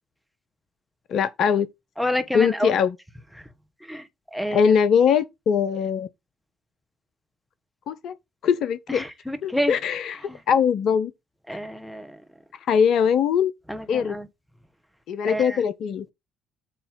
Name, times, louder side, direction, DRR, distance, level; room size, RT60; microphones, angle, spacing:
voice 1, 1.1-1.7 2.3-3.0 4.5-6.1 7.9-8.1 8.4-9.0 9.4-10.2 10.5-11.1 12.7-13.5 13.9-14.2 15.1-16.1, left 7 dB, 55° left, 0.5 m, -21 dB
voice 2, 2.0-2.7 3.9-4.0 4.3-4.7 8.9-9.8 10.3-10.4 11.5-12.1 13.7-14.3 15.3-15.6, equal, 5° left, 1.2 m, -28 dB
8.3 x 2.9 x 5.4 m
figure-of-eight pair, 45°, 0 cm